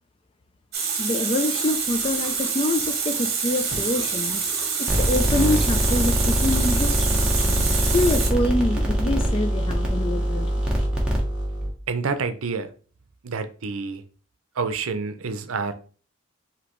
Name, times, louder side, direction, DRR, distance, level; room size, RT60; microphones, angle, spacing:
Water tap faucet, 0.7-8.3, right 5 dB, 50° right, 0.9 m, -26 dB
voice 1, 1.0-4.4 4.8-7.3 7.9-10.6, left 2 dB, 25° left, 0.3 m, -26 dB
sound 1, 1.7-2.4 2.7-3.0 3.6-4.2 4.4-5.3 5.5-6.5 6.8-10.5, left 2 dB, 60° left, 1.6 m, -44 dB
sound 2, 4.9-11.7, equal, 5° right, 0.8 m, -23 dB
voice 2, 11.9-12.7 13.2-14.0 14.6-15.7, right 4 dB, 80° right, 0.6 m, -28 dB
5.1 x 2.8 x 3.0 m
head